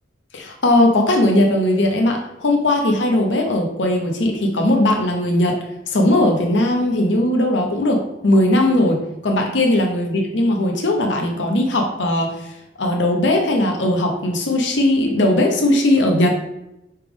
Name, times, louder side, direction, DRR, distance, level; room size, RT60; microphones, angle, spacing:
voice 1, 0.3-5.6 5.9-16.3, left 1 dB, 70° left, 2 dB, 0.9 m, -18 dB
5.7 x 3.4 x 5.0 m, 0.88 s
head